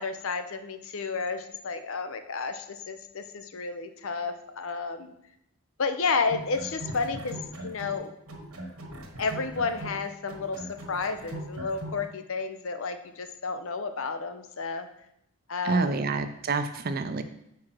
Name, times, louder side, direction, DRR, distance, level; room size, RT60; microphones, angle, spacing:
voice 1, 0.0-5.1 5.8-7.4 7.6-8.1 9.2-14.9 15.5-16.1, left 4 dB, 65° left, 8 dB, 0.6 m, -31 dB
sound 1, 6.2-8.0 8.3-12.0, right 1 dB, 75° right, 1.3 m, -40 dB
voice 2, 15.6-17.2, right 4 dB, 40° right, 9 dB, 0.4 m, -27 dB
4.8 x 4.7 x 6.0 m, 0.79 s
head